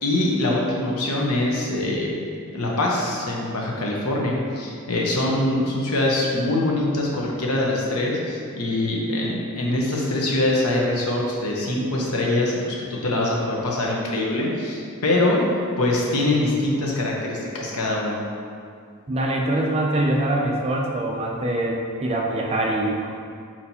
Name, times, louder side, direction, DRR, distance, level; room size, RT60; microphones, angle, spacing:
voice 1, 0.0-2.2 2.5-18.2, left 1 dB, 80° left, -2 dB, 0.8 m, -23 dB
voice 2, 19.1-23.1, right 1 dB, 25° right, -1 dB, 0.4 m, -24 dB
4.3 x 4.3 x 2.7 m, 2.3 s
head